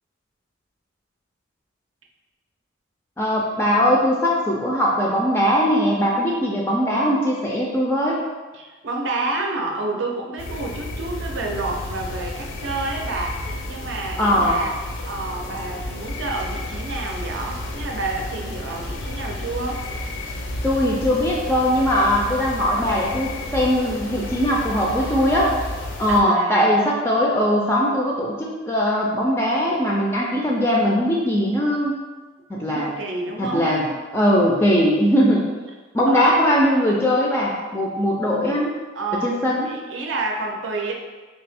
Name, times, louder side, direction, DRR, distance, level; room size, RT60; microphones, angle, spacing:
voice 1, 3.2-8.2 14.2-14.6 20.6-25.5 26.0-32.0 32.5-32.9 33.4-33.9 34.1-35.4 35.9-38.7 39.2-39.7, equal, 10° left, -3 dB, 0.3 m, -20 dB
voice 2, 8.5-14.7 15.1-19.8 26.1-26.7 32.5-34.0 36.1-36.4 39.0-40.9, right 2 dB, 65° right, 1 dB, 0.5 m, -29 dB
Night crickets, 10.4-26.2, left 1 dB, 70° left, 0.5 m, -32 dB
3.3 x 2.7 x 3.4 m, 1.3 s
head